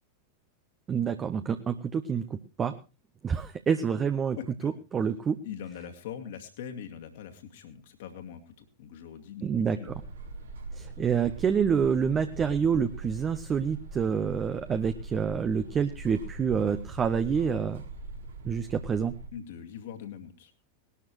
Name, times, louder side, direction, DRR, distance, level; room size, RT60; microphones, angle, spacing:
voice 1, 0.9-2.7 3.2-4.4 4.6-5.4 9.4-9.8 10.7-17.8 18.4-19.1, right 6 dB, 20° right, 9 dB, 0.9 m, -27 dB
voice 2, 4.4-4.7 5.4-9.9 19.3-20.5, left 8 dB, 55° left, 5 dB, 2.4 m, -42 dB
sound 1, 9.8-19.3, right 3 dB, 70° right, 3.1 m, -42 dB
20.0 x 12.5 x 3.2 m, 0.31 s
figure-of-eight pair, 90°, 0 cm